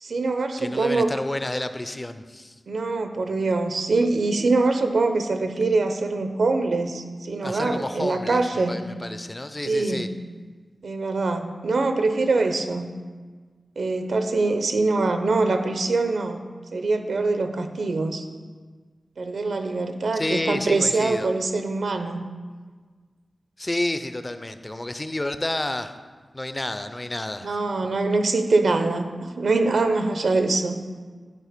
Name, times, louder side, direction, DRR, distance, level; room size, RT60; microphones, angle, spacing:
voice 1, 0.0-1.1 2.7-8.9 9.7-10.1 10.8-12.9 13.8-16.4 16.7-18.2 19.2-22.2 27.4-30.8, right 3 dB, 85° right, 7 dB, 0.6 m, -23 dB
voice 2, 0.6-2.5 7.4-10.1 20.1-21.3 23.6-25.9 26.3-27.6, left 1 dB, 25° left, 10 dB, 0.4 m, -30 dB
11.0 x 4.0 x 5.1 m, 1.5 s
wide cardioid pair, 90°, 0 cm